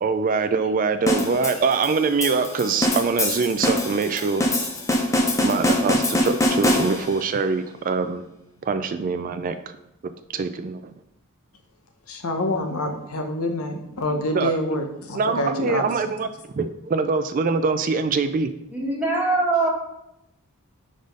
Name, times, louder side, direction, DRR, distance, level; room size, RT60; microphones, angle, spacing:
voice 1, 0.0-4.5 5.4-8.2 8.7-9.8 10.3-10.8 14.3-14.5 15.1-16.3 16.5-18.5, right 4 dB, 40° right, 9 dB, 0.3 m, -23 dB
sound 1, 1.1-7.3, left 1 dB, 15° left, 0.7 m, -23 dB
voice 2, 12.1-15.8, left 1 dB, 75° left, 4 dB, 0.9 m, -26 dB
voice 3, 18.7-19.7, right 3 dB, 5° right, -4 dB, 1.7 m, -22 dB
5.0 x 4.1 x 5.2 m, 0.84 s
head